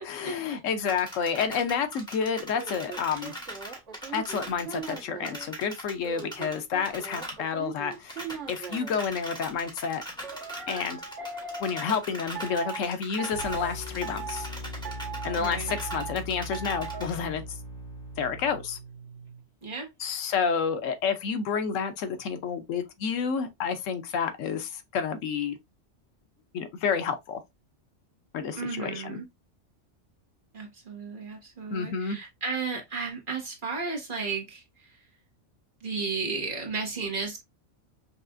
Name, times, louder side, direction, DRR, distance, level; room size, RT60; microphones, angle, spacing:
voice 1, 0.0-3.3 4.1-10.0 10.7-11.0 11.6-14.5 15.2-17.6 18.2-18.8 20.0-25.6 26.5-27.4 28.3-29.2 31.7-32.2, left 6 dB, 90° left, 1.1 m, -30 dB
sound 1, 0.9-6.6 6.8-7.4 7.6-7.7 7.9-17.1, equal, 5° left, 1.3 m, -41 dB
sound 2, 2.5-5.5 6.0-9.0 10.2-11.9 12.4-12.8 13.2-13.7 14.0-14.5 14.8-15.4 15.7-16.2 16.5-17.0, right 6 dB, 70° right, 1.5 m, -39 dB
sound 3, 13.3-19.4, equal, 60° left, 2.6 m, -40 dB
voice 2, 15.4-15.7 19.6-19.9 28.5-29.2 30.5-35.0 35.8-37.4, right 4 dB, 45° right, 1.3 m, -34 dB
5.6 x 2.4 x 2.5 m
omnidirectional pair, 1.3 m